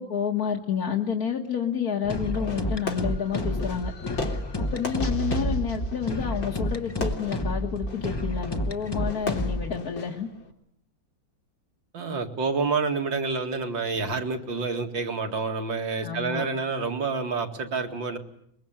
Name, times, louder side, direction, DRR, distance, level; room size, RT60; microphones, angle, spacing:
voice 1, 0.0-3.9 4.6-10.3 16.0-16.5, left 7 dB, 50° left, 1 dB, 2.0 m, -29 dB
sound 1, 2.0-9.8, left 1 dB, 20° left, 0.8 m, -30 dB
Fireworks, 2.4-10.5, left 2 dB, 75° left, 3.8 m, -38 dB
sound 2, 5.0-6.9, right 4 dB, 35° left, 1.5 m, -33 dB
voice 2, 11.9-18.2, right 4 dB, 75° right, 5 dB, 2.9 m, -28 dB
23.5 x 22.5 x 8.9 m, 0.72 s
omnidirectional pair, 2.1 m